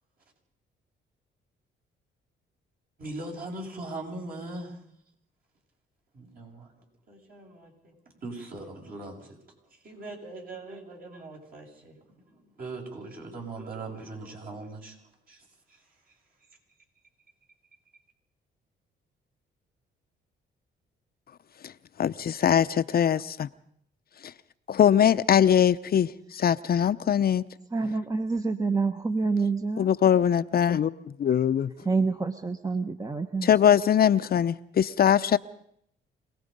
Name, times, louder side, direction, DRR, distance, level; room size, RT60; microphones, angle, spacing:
voice 1, 3.0-4.8 6.1-7.9 8.2-9.4 9.8-15.0 15.3-15.8, right 2 dB, 50° right, 7.2 m, -40 dB
voice 2, 22.0-23.5 24.7-27.4 29.8-30.9 31.2-31.7 33.4-35.4, left 9 dB, 50° left, 0.7 m, -22 dB
voice 3, 27.7-29.9 31.8-33.5, right 4 dB, 15° right, 1.2 m, -27 dB
26.5 x 18.5 x 5.4 m
cardioid pair, 90°, 20 cm